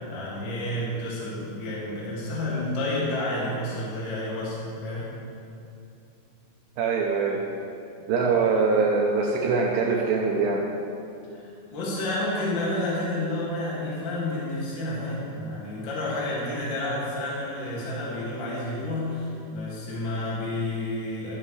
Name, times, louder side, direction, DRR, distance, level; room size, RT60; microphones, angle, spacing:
voice 1, 0.0-5.1 11.3-21.4, left 1 dB, 35° left, -6 dB, 2.0 m, -30 dB
voice 2, 6.8-7.4 8.1-10.7, right 4 dB, 80° right, -1 dB, 2.5 m, -23 dB
13.0 x 10.5 x 3.3 m, 2.6 s
omnidirectional pair, 5.4 m